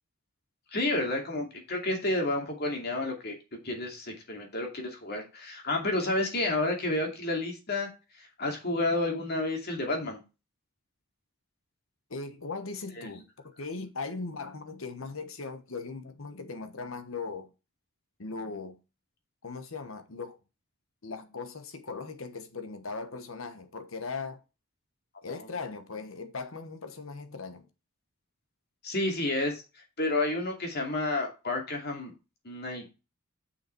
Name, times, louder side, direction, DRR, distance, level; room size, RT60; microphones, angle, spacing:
voice 1, 0.7-3.4 3.6-7.9 8.4-10.2 13.0-13.1 25.3-25.4 28.8-29.6 30.0-32.1 32.4-32.9, left 2 dB, 45° left, 2.4 m, -30 dB
voice 2, 12.1-13.2 13.6-17.5 18.2-18.8 19.4-20.4 21.0-24.4 25.2-27.7, left 4 dB, 65° left, 1.2 m, -39 dB
7.1 x 5.8 x 4.5 m
head